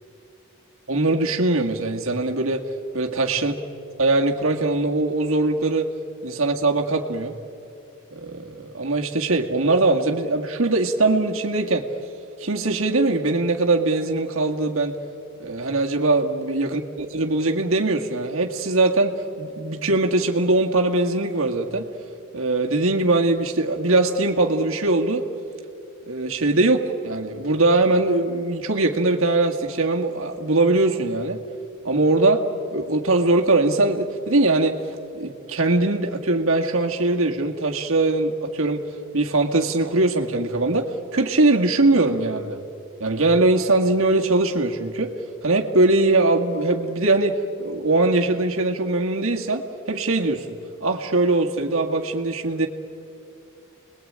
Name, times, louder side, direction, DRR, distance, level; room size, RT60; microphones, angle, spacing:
voice 1, 0.9-2.6 2.9-3.5 4.0-5.9 6.2-7.3 8.1-11.9 12.4-15.0 15.4-16.8 17.1-21.9 22.3-25.2 26.1-31.4 31.8-32.4 32.7-34.8 35.1-38.8 39.1-42.6 43.0-45.1 45.4-52.7, right 2 dB, 65° right, 2 dB, 2.0 m, -21 dB
29.5 x 21.0 x 8.8 m, 2.6 s
head